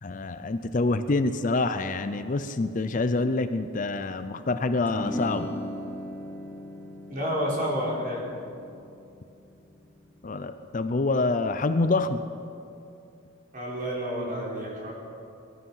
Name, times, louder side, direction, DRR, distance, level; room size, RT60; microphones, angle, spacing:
voice 1, 0.0-5.5 10.2-12.2, left 3 dB, 40° left, 10 dB, 0.5 m, -26 dB
sound 1, 4.9-11.4, equal, 10° left, 0.9 m, -39 dB
voice 2, 7.1-8.2 13.5-14.9, equal, 40° right, -4 dB, 4.2 m, -29 dB
21.5 x 11.5 x 5.6 m, 2.6 s
head